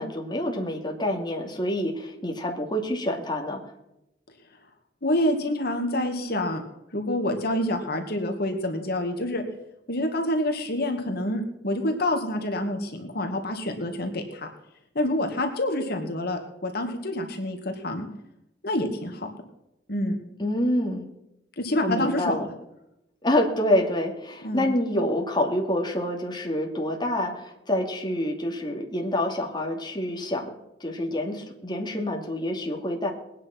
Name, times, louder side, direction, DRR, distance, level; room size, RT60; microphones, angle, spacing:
voice 1, 0.0-3.6 20.4-21.1 21.8-22.5 23.2-30.5 30.8-33.1, left 1 dB, 25° left, 1 dB, 2.6 m, -27 dB
voice 2, 5.0-6.6 6.9-9.4 9.9-14.5 15.0-18.1 18.6-19.3 19.9-20.2 21.6-22.3 24.4-24.7, left 1 dB, 60° left, 4 dB, 2.2 m, -27 dB
21.0 x 9.8 x 6.0 m, 0.86 s
head